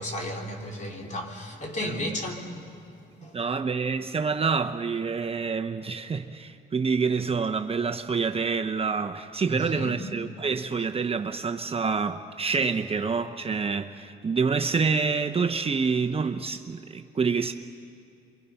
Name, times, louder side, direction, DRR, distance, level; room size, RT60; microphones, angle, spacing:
voice 1, 0.0-2.6 3.2-3.4 9.5-10.0, left 1 dB, 40° left, 3.7 m, -34 dB
voice 2, 3.2-17.5, right 5 dB, 30° right, 0.8 m, -27 dB
28.5 x 24.0 x 5.8 m
cardioid pair, 90°, 20 cm